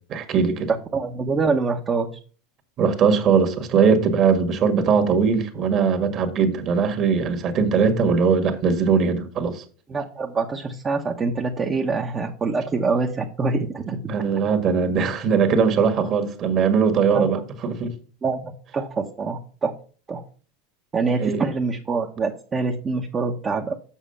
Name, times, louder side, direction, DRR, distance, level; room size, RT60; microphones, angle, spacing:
voice 1, 0.1-0.7 2.8-9.6 14.1-17.9 21.2-21.4, right 6 dB, 40° right, 1.7 m, -20 dB
voice 2, 0.9-2.2 9.9-14.0 17.1-17.3 18.2-19.7 20.1-20.2 20.9-23.7, right 4 dB, 25° right, 1.0 m, -25 dB
7.3 x 6.1 x 5.6 m
supercardioid pair, 120°, 0 cm